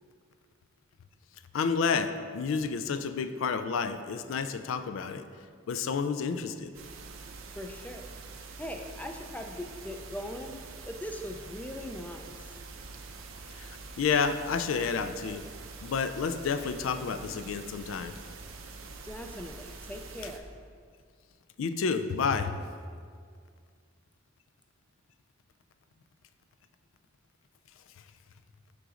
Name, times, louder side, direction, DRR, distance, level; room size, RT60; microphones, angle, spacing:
voice 1, 1.5-5.2 5.7-6.7 13.6-15.5 15.8-18.2 21.6-22.6, left 5 dB, 80° left, 10 dB, 0.4 m, -30 dB
sound 1, 6.7-20.4, right 4 dB, 85° right, 0.7 m, -45 dB
voice 2, 7.5-8.1 8.6-10.6 10.8-12.4 19.0-20.5, left 1 dB, 10° left, 4 dB, 0.4 m, -40 dB
7.7 x 3.8 x 5.0 m, 2.1 s
head